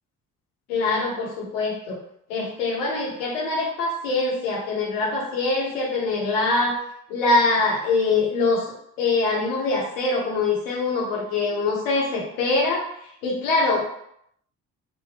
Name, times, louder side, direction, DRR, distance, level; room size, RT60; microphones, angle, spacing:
voice 1, 0.7-2.0 2.3-6.8 7.1-8.7 9.0-12.8 13.2-13.8, left 3 dB, 85° left, -3 dB, 0.8 m, -23 dB
3.4 x 2.0 x 2.8 m, 0.71 s
hypercardioid pair, 45°, 38 cm